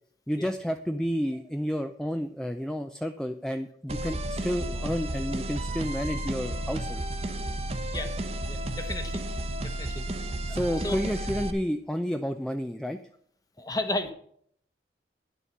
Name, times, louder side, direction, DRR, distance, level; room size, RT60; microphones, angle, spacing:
voice 1, 0.3-7.0 10.4-13.0, equal, 5° left, 7 dB, 0.4 m, -30 dB
sound 1, 3.9-11.5, right 1 dB, 35° right, 0.9 m, -32 dB
voice 2, 8.5-9.2 9.6-10.0 10.5-10.6 10.8-11.2 13.6-14.1, left 2 dB, 20° left, 8 dB, 1.1 m, -33 dB
10.5 x 7.1 x 5.9 m, 0.63 s
head